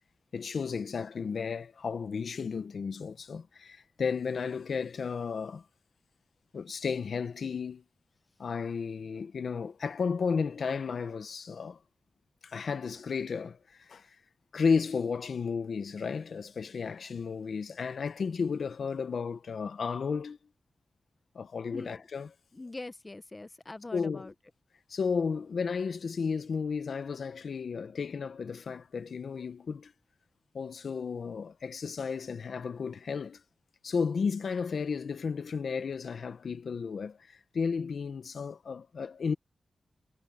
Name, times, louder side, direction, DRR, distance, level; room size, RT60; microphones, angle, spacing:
voice 1, 0.3-5.6 6.5-7.8 8.4-11.8 12.4-14.2 14.5-20.4 21.3-22.3 23.9-24.3 24.9-29.9 30.5-33.4 33.8-39.3, left 5 dB, 70° left, 0.8 m, -33 dB
voice 2, 22.5-24.3, left 2 dB, 25° left, 0.9 m, -43 dB
wide cardioid pair, 120°, 0 cm